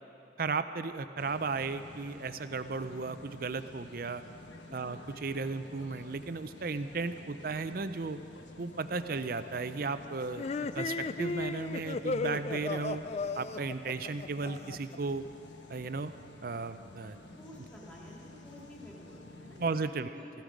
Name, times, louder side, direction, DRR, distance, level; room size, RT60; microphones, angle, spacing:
voice 1, 0.4-4.2 4.7-8.2 8.6-10.5 10.7-13.0 13.4-15.2 15.7-16.1 16.4-17.2 19.6-20.1, right 4 dB, 55° right, 11 dB, 0.5 m, -35 dB
sound 1, 1.2-19.9, left 2 dB, 90° left, 1.1 m, -51 dB
voice 2, 4.7-5.2 17.3-20.3, equal, 5° left, -4 dB, 2.4 m, -51 dB
sound 2, 10.3-15.0, left 3 dB, 35° left, 0.3 m, -35 dB
15.5 x 13.5 x 5.2 m, 2.7 s
head